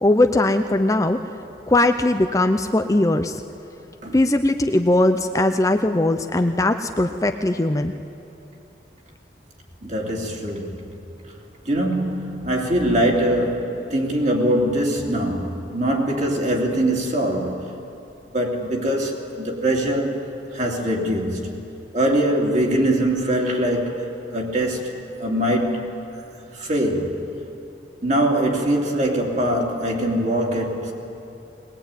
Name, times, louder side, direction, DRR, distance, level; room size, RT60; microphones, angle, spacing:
voice 1, 0.0-1.2 1.7-3.4 4.1-7.9, left 1 dB, 20° left, 0.6 m, -19 dB
voice 2, 9.8-10.8 11.6-17.7 18.3-21.6 21.9-25.9 26.5-27.2 28.0-30.9, right 1 dB, 40° right, 2.9 m, -23 dB
21.5 x 19.5 x 9.1 m
head